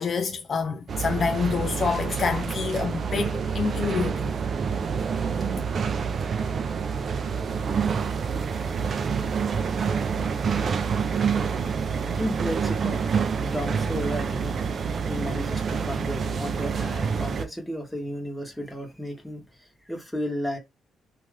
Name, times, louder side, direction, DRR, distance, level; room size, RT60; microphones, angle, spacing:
voice 1, 0.0-4.3, left 5 dB, 50° left, 0.3 m, -27 dB
sound 1, 0.9-17.4, right 6 dB, 50° right, 0.4 m, -27 dB
voice 2, 11.5-14.6 15.0-20.6, equal, 5° left, 1.0 m, -34 dB
2.5 x 2.4 x 3.2 m
cardioid pair, 90°, 0 cm